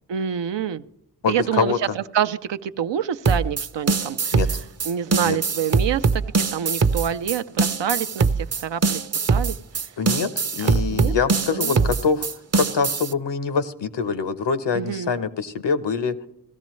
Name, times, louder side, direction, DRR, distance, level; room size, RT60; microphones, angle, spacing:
voice 1, 0.1-0.8 1.3-4.4 4.8-9.6 10.6-11.1 11.5-11.9 14.7-15.1, right 9 dB, 85° right, 11 dB, 0.6 m, -27 dB
voice 2, 1.2-1.8 4.3-4.6 5.2-5.4 10.0-12.3 12.5-16.2, left 5 dB, 80° left, 12 dB, 0.9 m, -24 dB
sound 1, 3.2-13.1, right 4 dB, 35° right, 0.6 m, -22 dB
17.0 x 13.5 x 3.1 m, 0.78 s
cardioid pair, 45°, 42 cm